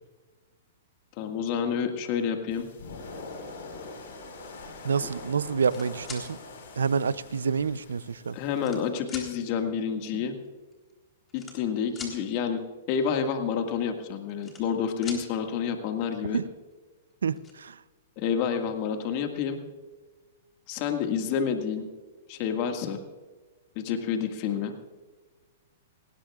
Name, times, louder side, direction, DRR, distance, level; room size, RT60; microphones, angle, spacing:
voice 1, 1.2-2.7 5.0-5.1 8.3-10.4 11.3-12.6 12.9-16.4 18.2-19.6 20.7-21.9 22.3-23.0 23.8-24.7, left 7 dB, 45° left, 5 dB, 1.8 m, -29 dB
sound 1, 2.5-8.9, left 3 dB, 70° left, 4.7 m, -44 dB
voice 2, 4.8-6.4 6.8-8.4 16.3-16.4 17.2-17.8, right 6 dB, 90° right, 18 dB, 0.5 m, -28 dB
sound 2, 5.6-6.2 7.2-7.3 8.1-8.8 9.1-9.3 10.4-10.5 10.7-10.9 11.3-12.2 14.0-14.8 15.0-15.2 16.7-16.8 17.1-17.5, left 4 dB, 20° left, 3.7 m, -42 dB
19.0 x 18.5 x 2.4 m, 1.3 s
hypercardioid pair, 130°, 0 cm